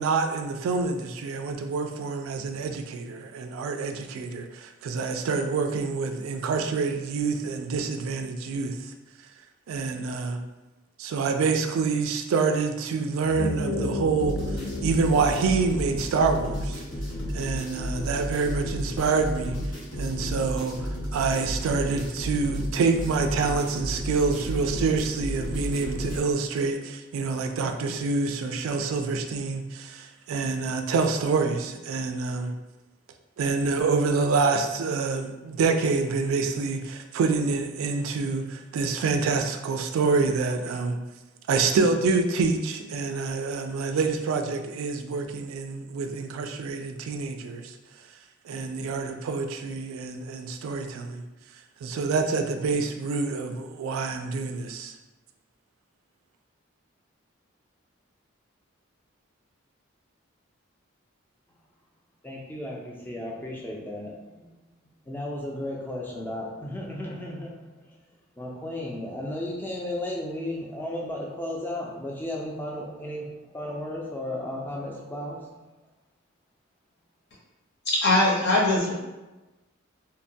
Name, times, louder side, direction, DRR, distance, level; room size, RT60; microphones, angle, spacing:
voice 1, 0.0-8.8 9.7-10.4 11.0-16.8 17.3-19.5 20.0-32.5 33.4-41.0 41.5-47.7 48.5-51.2 51.8-54.9, right 4 dB, 90° right, 6 dB, 0.3 m, -27 dB
sound 1, 13.2-18.0, left 2 dB, 90° left, 0.3 m, -34 dB
sound 2, 14.2-26.2, equal, 70° left, 0.9 m, -32 dB
voice 2, 62.2-64.5 65.1-67.6 68.4-75.5, left 1 dB, 10° left, -2 dB, 0.3 m, -34 dB
voice 3, 77.9-78.9, left 2 dB, 55° left, -4 dB, 0.7 m, -21 dB
2.9 x 2.1 x 2.6 m, 1.1 s
head